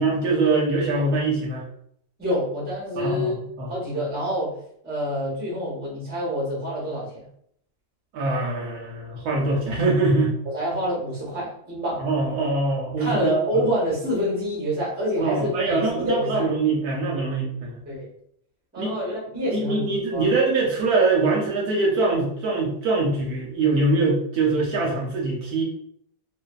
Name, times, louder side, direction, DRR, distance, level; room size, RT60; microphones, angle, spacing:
voice 1, 0.0-1.6 3.0-3.7 8.1-10.4 12.0-13.3 15.2-17.7 18.8-18.9 19.5-25.6, right 3 dB, 70° right, -1 dB, 1.0 m, -23 dB
voice 2, 2.2-3.4 3.7-4.6 4.8-7.2 10.5-12.0 13.0-16.5 17.9-18.1 18.7-20.3, equal, 10° right, -6 dB, 0.5 m, -27 dB
2.5 x 2.5 x 2.3 m, 0.68 s
omnidirectional pair, 1.9 m